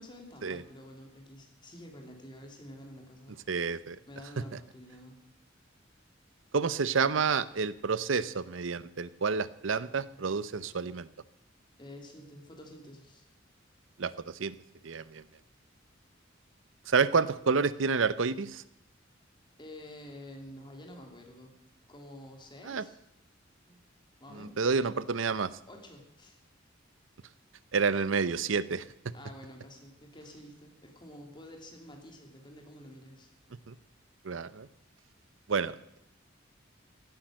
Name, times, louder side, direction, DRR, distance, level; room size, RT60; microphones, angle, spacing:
voice 1, 0.0-3.7 4.1-5.2 11.8-13.3 19.6-21.5 21.9-23.0 23.7-23.8 24.2-24.6 25.7-26.4 29.1-33.3, left 1 dB, 25° left, 2 dB, 3.0 m, -49 dB
voice 2, 3.5-4.0 6.5-11.1 14.0-14.5 14.8-15.2 16.9-18.6 22.6-22.8 24.3-25.5 27.7-28.8 33.7-33.8 34.2-34.7 35.5-36.0, right 5 dB, 75° right, 17 dB, 0.7 m, -29 dB
16.5 x 10.5 x 6.4 m, 0.79 s
head